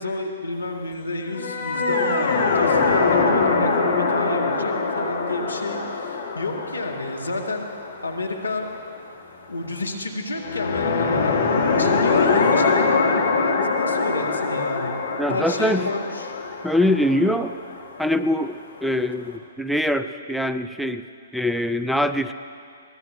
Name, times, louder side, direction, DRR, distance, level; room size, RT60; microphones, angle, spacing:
voice 1, 0.0-7.7 8.0-8.7 9.5-11.4 11.8-14.9 15.3-16.3, left 2 dB, 80° left, 1 dB, 1.7 m, -30 dB
sound 1, 1.2-8.5 10.3-18.1, left 4 dB, 60° left, 2.2 m, -23 dB
voice 2, 15.2-15.9 16.6-17.5 18.0-21.0 21.3-22.3, left 1 dB, ahead, 9 dB, 0.4 m, -23 dB
23.0 x 18.0 x 2.6 m, 2.3 s
figure-of-eight pair, 120°, 0 cm